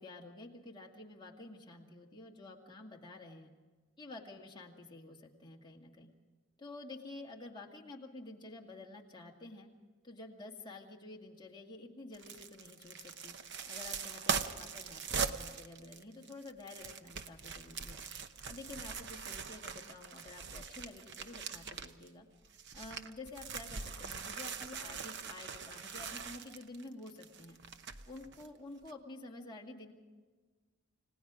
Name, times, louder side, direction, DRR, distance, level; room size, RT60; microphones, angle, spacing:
voice 1, 0.0-3.5 4.0-6.1 6.6-9.7 10.0-13.4 13.7-18.0 18.4-22.3 22.7-27.6 28.1-29.9, left 2 dB, 20° left, -1 dB, 2.2 m, -50 dB
sound 1, 12.1-22.1 22.4-28.5 28.8-28.9, right 6 dB, 50° right, 0.9 m, -41 dB
30.0 x 17.5 x 5.0 m, 1.4 s
head